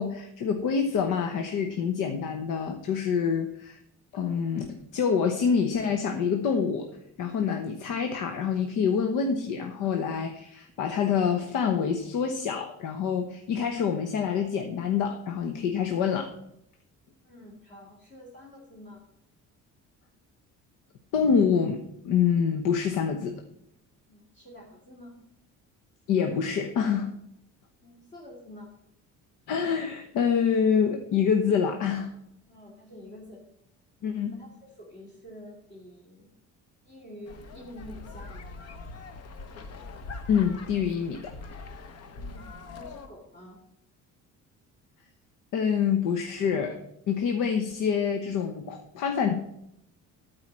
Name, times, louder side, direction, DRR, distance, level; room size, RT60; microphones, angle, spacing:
voice 1, 0.0-3.8 4.1-6.9 7.2-16.3 21.1-23.4 26.1-27.1 29.5-32.1 34.0-34.4 40.3-41.3 45.5-49.3, left 6 dB, 85° left, 6 dB, 1.1 m, -26 dB
voice 2, 17.2-19.0 24.1-25.1 27.8-28.7 32.5-33.4 34.0-36.3 36.8-38.6 42.2-43.6, left 1 dB, 35° left, -3 dB, 2.4 m, -48 dB
sound 1, 37.2-43.1, left 3 dB, 55° left, 1.1 m, -42 dB
13.0 x 4.8 x 7.5 m, 0.77 s
cardioid pair, 175°, 31 cm